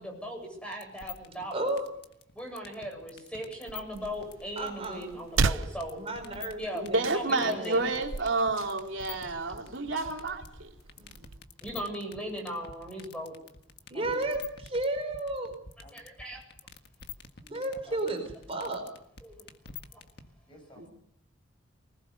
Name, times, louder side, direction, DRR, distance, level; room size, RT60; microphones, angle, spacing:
voice 1, 0.0-1.7 2.3-6.0 6.6-6.9 7.1-8.0 11.6-13.3 15.9-16.4 19.2-19.4, equal, 5° left, 2 dB, 7.8 m, -38 dB
sound 1, 0.7-20.3, left 7 dB, 55° left, 1.7 m, -46 dB
voice 2, 1.5-1.8 4.6-5.1 6.0-6.6 6.9-7.8 11.0-11.3 13.9-15.5 17.4-18.2 18.5-18.8, right 2 dB, 30° right, 5 dB, 4.6 m, -33 dB
sound 2, 3.9-11.4, right 4 dB, 85° right, 0.9 m, -36 dB
voice 3, 6.7-10.7 20.8-20.9, right 3 dB, 70° right, 1 dB, 3.2 m, -30 dB
voice 4, 13.9-14.3 15.8-15.9 17.7-18.2 20.5-20.9, left 1 dB, 25° left, 3 dB, 7.8 m, -51 dB
24.5 x 20.0 x 6.8 m, 0.73 s
head